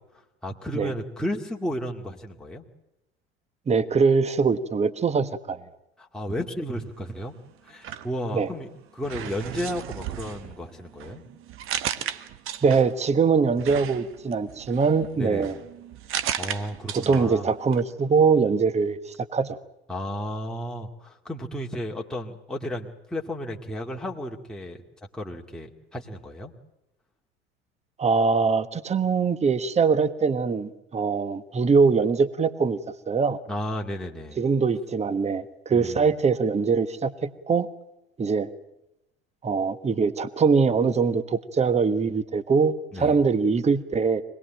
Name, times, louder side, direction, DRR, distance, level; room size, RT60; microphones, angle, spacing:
voice 1, 0.4-2.6 6.0-7.3 7.6-11.2 15.2-15.5 16.4-17.5 19.9-24.8 25.1-26.5 33.5-34.4 35.7-36.1 42.9-43.2, equal, ahead, -1 dB, 2.2 m, -33 dB
voice 2, 3.7-5.6 8.3-8.5 12.6-15.5 16.9-19.6 28.0-32.8 33.1-33.4 34.4-37.7 38.2-38.5 39.4-44.2, right 5 dB, 20° right, 13 dB, 1.3 m, -22 dB
sound 1, 7.7-8.6 9.0-13.1 13.6-17.4 17.7-17.8, right 10 dB, 40° right, 1.4 m, -35 dB
25.0 x 19.5 x 9.0 m, 0.90 s
figure-of-eight pair, 70°, 32 cm